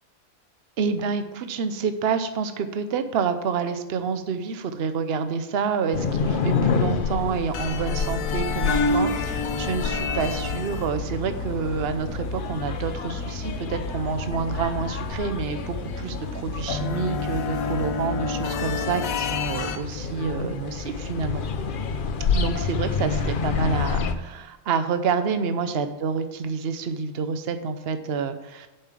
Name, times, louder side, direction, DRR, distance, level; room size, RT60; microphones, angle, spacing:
voice 1, 0.8-21.4 22.3-28.7, right 5 dB, 50° right, 9 dB, 0.9 m, -28 dB
sound 1, 5.9-24.1, left 5 dB, 50° left, 0.7 m, -29 dB
sound 2, 7.5-19.8, left 3 dB, 70° left, 1.2 m, -30 dB
7.2 x 5.6 x 7.4 m, 1.1 s
omnidirectional pair, 1.5 m